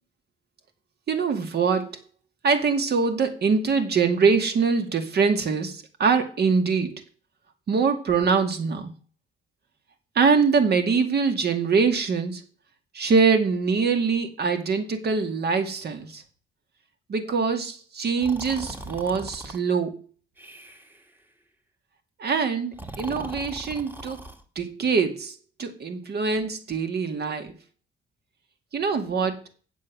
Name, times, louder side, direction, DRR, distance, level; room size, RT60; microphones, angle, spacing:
voice 1, 1.1-2.0 2.4-7.0 7.7-8.9 10.2-12.4 12.9-16.2 17.1-20.0 22.2-24.2 24.6-27.5 28.7-29.4, right 5 dB, 55° right, 6 dB, 2.1 m, -23 dB
Breathing, 18.2-19.6 20.4-21.0 22.7-24.4, right 1 dB, 10° right, 1.5 m, -39 dB
8.7 x 7.5 x 6.0 m, 0.39 s
cardioid pair, 90°, 20 cm